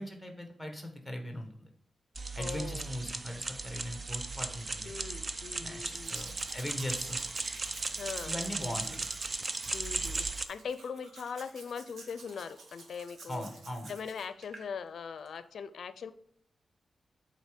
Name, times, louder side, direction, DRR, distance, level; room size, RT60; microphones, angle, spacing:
voice 1, 0.0-1.7 2.3-4.9 5.6-7.2 8.3-9.0 13.3-13.9, equal, ahead, 4 dB, 1.3 m, -39 dB
sound 1, 2.2-10.5, right 3 dB, 30° right, 0.5 m, -37 dB
voice 2, 2.4-2.9 4.8-6.2 8.0-9.0 9.7-13.5 13.9-16.1, left 6 dB, 70° left, 13 dB, 0.5 m, -41 dB
Domestic sounds home sounds, 5.9-14.7 15.3-15.4, right 3 dB, 75° right, 1.3 m, -50 dB
8.1 x 3.9 x 5.1 m, 0.70 s
wide cardioid pair, 150°, 0 cm